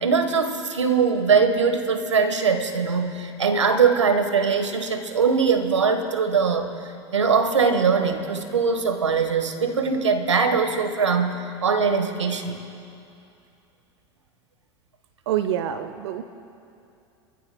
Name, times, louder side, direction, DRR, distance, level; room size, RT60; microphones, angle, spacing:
voice 1, 0.0-12.6, right 5 dB, 90° right, 7 dB, 1.2 m, -22 dB
voice 2, 15.3-16.2, right 10 dB, 70° right, 8 dB, 0.7 m, -26 dB
25.5 x 14.5 x 2.2 m, 2.6 s
hypercardioid pair, 90°, 15 cm